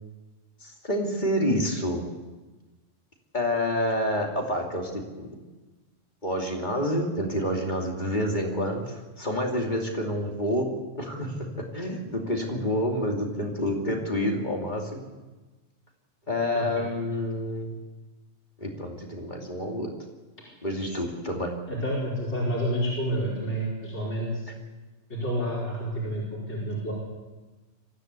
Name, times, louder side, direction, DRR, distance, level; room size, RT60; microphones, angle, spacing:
voice 1, 0.6-2.0 3.3-5.4 6.2-10.7 10.9-11.3 11.7-15.0 16.3-17.7 18.6-19.9 20.6-21.5, equal, 35° left, 1 dB, 2.9 m, -28 dB
voice 2, 16.5-16.9 21.7-24.4 25.1-26.9, equal, 60° left, -5 dB, 5.4 m, -29 dB
23.5 x 15.0 x 8.2 m, 1.2 s
omnidirectional pair, 1.3 m